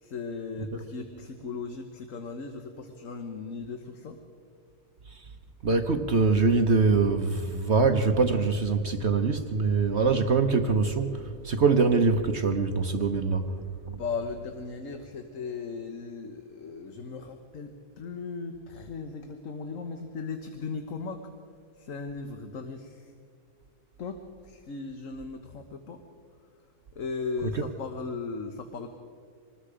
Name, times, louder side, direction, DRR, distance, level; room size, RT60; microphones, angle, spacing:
voice 1, 0.0-4.2 13.8-21.2 21.8-23.1 24.0-26.0 26.9-28.9, left 4 dB, 55° left, 6 dB, 1.5 m, -37 dB
voice 2, 5.6-13.5 27.5-27.6, right 4 dB, 50° right, 6 dB, 1.0 m, -24 dB
26.0 x 20.0 x 5.0 m, 2.2 s
omnidirectional pair, 1.8 m